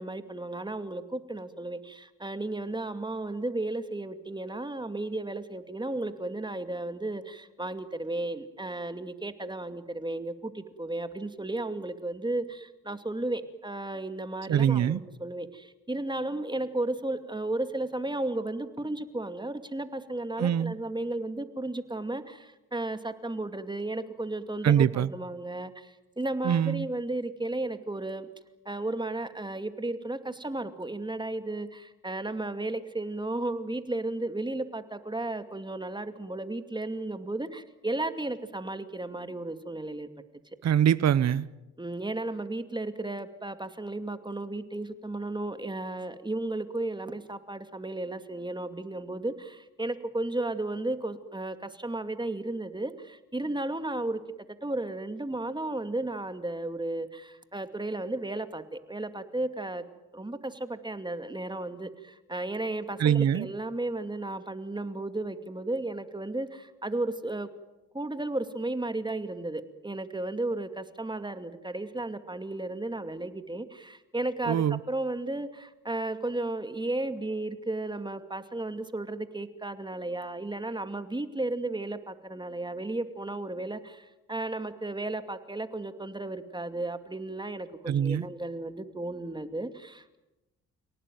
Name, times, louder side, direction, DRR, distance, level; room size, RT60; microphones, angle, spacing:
voice 1, 0.0-28.3 28.7-40.1 41.8-54.2 54.6-59.8 60.1-67.5 67.9-90.2, right 2 dB, 15° right, 2.5 m, -34 dB
voice 2, 14.5-15.0 20.4-20.8 24.6-25.1 26.4-26.9 40.6-41.5 63.0-63.5 74.5-74.8 87.9-88.3, right 9 dB, 55° right, 1.0 m, -23 dB
29.0 x 18.0 x 9.3 m
supercardioid pair, 65°, 31 cm